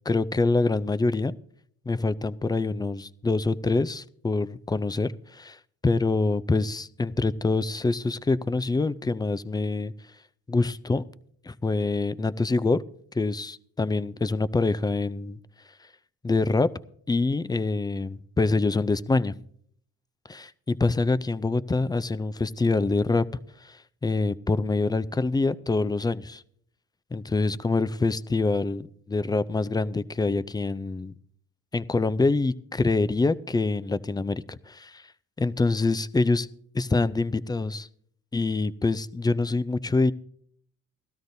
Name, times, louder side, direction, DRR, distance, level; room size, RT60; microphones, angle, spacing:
voice 1, 0.0-1.4 1.9-5.6 5.8-9.9 10.5-11.0 11.5-12.8 13.1-15.4 16.2-16.7 17.1-19.4 20.3-23.3 23.6-26.4 27.1-31.1 31.7-35.0 35.4-36.5 36.7-37.9 38.3-40.1, left 3 dB, 15° left, 15 dB, 0.4 m, -25 dB
17.5 x 13.0 x 2.7 m, 0.63 s
cardioid pair, 90°, 30 cm